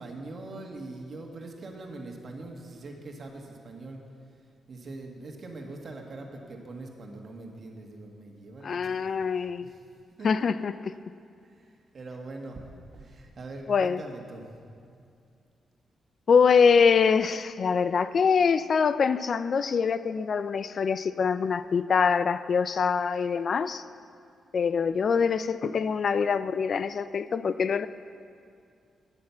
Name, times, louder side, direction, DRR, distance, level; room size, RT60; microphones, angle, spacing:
voice 1, 0.0-4.0 4.7-9.8 10.2-10.5 11.4-12.6 12.9-14.5 14.8-15.1, right 2 dB, 45° right, 1 dB, 1.7 m, -42 dB
voice 2, 8.6-9.7 10.2-10.7 13.7-14.0 16.3-23.8 24.5-27.9, left 6 dB, 50° left, 14 dB, 0.3 m, -24 dB
10.5 x 9.9 x 7.2 m, 2.4 s
cardioid pair, 125°, 0 cm